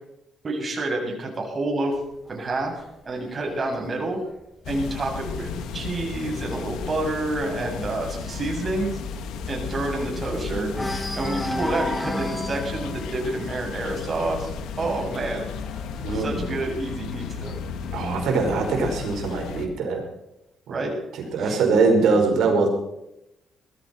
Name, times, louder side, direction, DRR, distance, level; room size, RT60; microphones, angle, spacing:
voice 1, 0.4-1.9 2.3-2.7 3.1-4.2 4.7-9.0 9.5-10.7 11.2-14.5 14.8-15.5 16.1-17.6 20.7-20.9 21.4-21.6, right 2 dB, 35° right, 0 dB, 7.3 m, -28 dB
sound 1, 1.9-5.6 6.0-6.3 6.6-6.7 7.1-10.3 10.7-17.2 18.1-19.1, left 1 dB, 10° left, 2.0 m, -35 dB
sound 2, 4.6-19.7, left 6 dB, 85° left, 1.6 m, -34 dB
voice 2, 16.0-16.5 17.9-20.0 20.7-20.8 21.3-22.7, right 4 dB, 75° right, 2 dB, 5.4 m, -22 dB
20.5 x 14.0 x 4.6 m, 0.86 s
cardioid pair, 90°, 0 cm